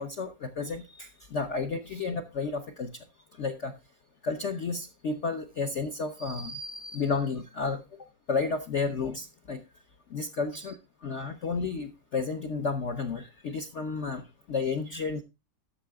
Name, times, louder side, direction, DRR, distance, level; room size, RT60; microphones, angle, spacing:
voice 1, 0.0-2.9 3.4-3.7 4.2-7.8 8.3-9.6 10.1-10.8 11.0-14.2 14.5-15.2, left 4 dB, 55° left, 4 dB, 0.8 m, -32 dB
12.5 x 6.5 x 3.4 m, 0.27 s
omnidirectional pair, 2.0 m